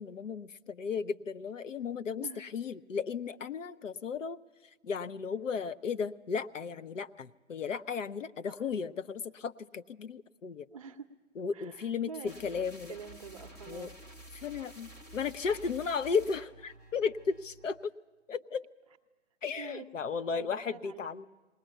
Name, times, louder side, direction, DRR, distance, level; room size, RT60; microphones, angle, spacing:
voice 1, 0.0-4.4 4.8-10.7 11.4-12.9 13.7-13.9 14.3-17.9 18.3-18.7 19.4-21.3, left 6 dB, 75° left, 12 dB, 0.9 m, -35 dB
voice 2, 10.7-11.1 11.5-12.6 12.9-13.9 19.6-19.9 20.3-21.3, right 6 dB, 30° right, 7 dB, 0.8 m, -46 dB
sound 1, 12.2-17.9, right 1 dB, 15° left, 0.8 m, -51 dB
20.0 x 19.0 x 8.9 m, 1.2 s
hypercardioid pair, 150°, 38 cm